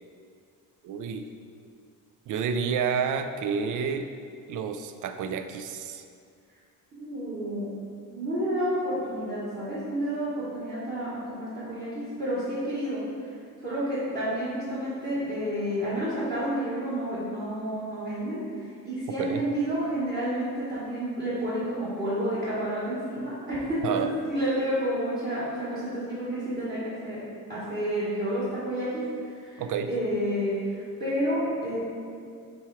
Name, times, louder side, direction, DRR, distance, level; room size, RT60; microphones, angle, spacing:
voice 1, 0.8-1.3 2.3-4.1 4.5-6.0 19.2-19.4 23.8-24.1 29.6-29.9, right 6 dB, 60° right, 7 dB, 0.4 m, -29 dB
voice 2, 7.0-7.7 8.1-13.0 13.6-27.2 27.5-29.0 29.3-29.6 29.9-31.8, equal, 30° right, -11 dB, 1.4 m, -30 dB
6.0 x 3.5 x 4.7 m, 2.3 s
cardioid pair, 170°, 35 cm